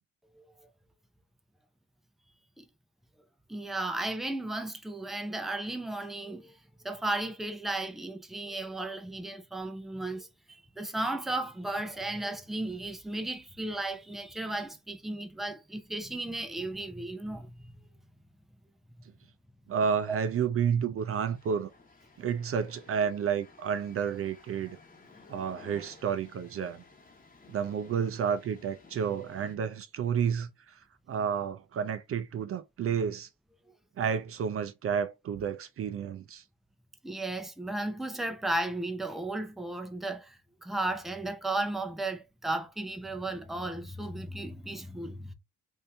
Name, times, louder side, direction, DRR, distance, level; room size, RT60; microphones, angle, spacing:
voice 1, 0.4-0.7 2.6-2.7 3.5-6.6 6.8-17.5 20.1-20.2 37.0-45.3, right 2 dB, ahead, 0.5 m, -35 dB
voice 2, 19.7-21.7 22.2-24.8 25.3-26.8 27.5-33.3 34.0-36.4, right 7 dB, 50° right, 0.4 m, -31 dB
sound 1, 21.0-29.6, left 4 dB, 30° left, 1.1 m, -56 dB
2.7 x 2.7 x 3.3 m
cardioid pair, 90°, 30 cm